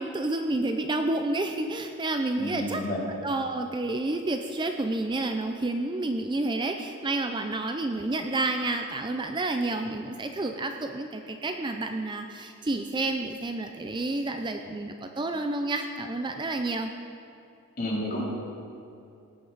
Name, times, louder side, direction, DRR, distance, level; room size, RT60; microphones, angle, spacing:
voice 1, 0.0-16.9, right 2 dB, 20° right, 5 dB, 0.4 m, -30 dB
voice 2, 2.4-3.0 17.8-18.2, left 1 dB, 40° left, -5 dB, 3.2 m, -30 dB
18.5 x 9.5 x 4.0 m, 2.6 s
head